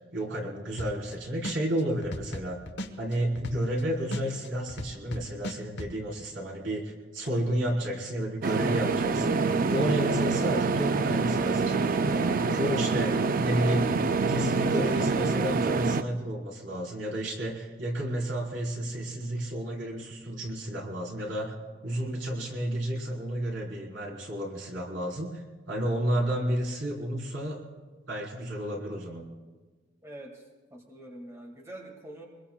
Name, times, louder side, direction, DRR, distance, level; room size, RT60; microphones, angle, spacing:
voice 1, 0.1-2.6 3.0-21.5 21.8-27.6 28.1-29.2, right 1 dB, 85° right, -2 dB, 3.9 m, -31 dB
sound 1, 0.8-1.1 1.4-3.8 4.1-5.9, left 1 dB, 65° left, 1.0 m, -36 dB
sound 2, 8.4-16.0, right 4 dB, 50° right, 0.5 m, -26 dB
voice 2, 30.0-30.4 30.7-32.3, right 1 dB, 15° right, 0 dB, 2.0 m, -44 dB
25.0 x 21.5 x 2.3 m, 1.3 s
head